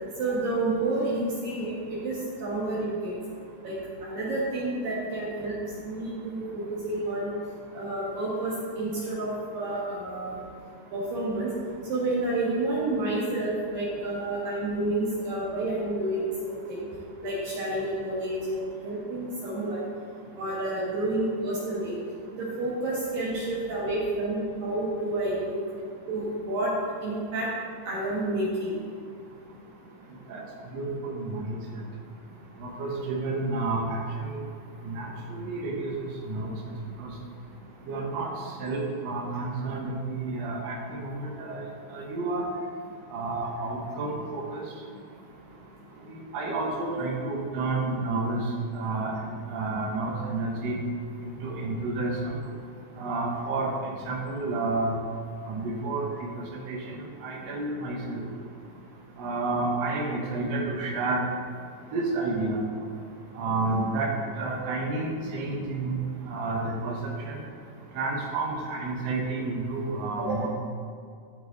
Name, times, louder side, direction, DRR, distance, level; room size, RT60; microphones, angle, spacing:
voice 1, 0.2-3.1 3.6-5.6 5.8-7.3 7.7-10.4 10.9-11.5 11.9-16.8 17.2-19.9 20.4-22.0 22.3-25.6 26.1-26.7 27.0-27.5 27.8-28.8 70.3-70.4, right 2 dB, 65° right, -7 dB, 2.7 m, -29 dB
voice 2, 30.7-31.6 32.6-34.4 34.8-35.9 36.2-36.5 37.0-37.1 37.9-38.3 38.6-42.5 43.1-44.6 46.1-48.4 48.7-49.1 49.5-50.8 51.2-52.4 53.0-54.9 55.5-56.0 56.7-56.8 57.2-58.3 59.2-61.2 61.9-62.6 63.3-64.1 64.4-66.0 66.3-66.9 67.3-67.4 67.9-70.5, right 3 dB, 85° right, -3 dB, 1.4 m, -30 dB
13.5 x 5.2 x 4.0 m, 2.3 s
omnidirectional pair, 5.1 m